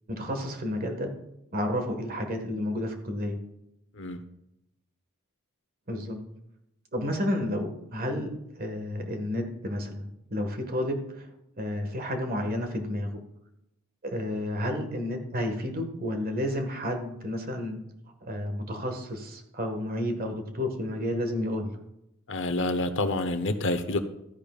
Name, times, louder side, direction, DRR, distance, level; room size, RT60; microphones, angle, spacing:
voice 1, 0.1-1.1 1.5-3.4 5.9-6.2 6.9-8.3 8.6-11.3 11.6-13.2 14.0-17.8 18.2-21.7, left 1 dB, 40° right, 5 dB, 1.6 m, -31 dB
voice 2, 22.3-24.0, left 2 dB, 60° left, 9 dB, 0.9 m, -28 dB
13.5 x 10.0 x 2.4 m, 0.85 s
head